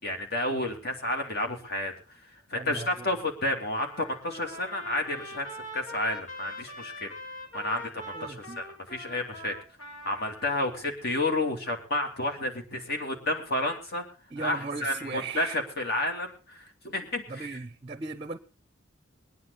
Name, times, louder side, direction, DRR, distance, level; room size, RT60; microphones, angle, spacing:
voice 1, 0.0-1.9 2.5-7.1 7.5-8.6 8.9-9.5 10.0-14.0 14.4-17.6, left 1 dB, 55° left, 2.8 m, -31 dB
voice 2, 2.5-2.9 8.1-8.6 14.3-15.6 17.3-18.4, right 4 dB, 30° right, 0.6 m, -37 dB
Trumpet, 3.8-10.6, left 1 dB, 80° left, 3.0 m, -43 dB
22.5 x 9.7 x 4.1 m
head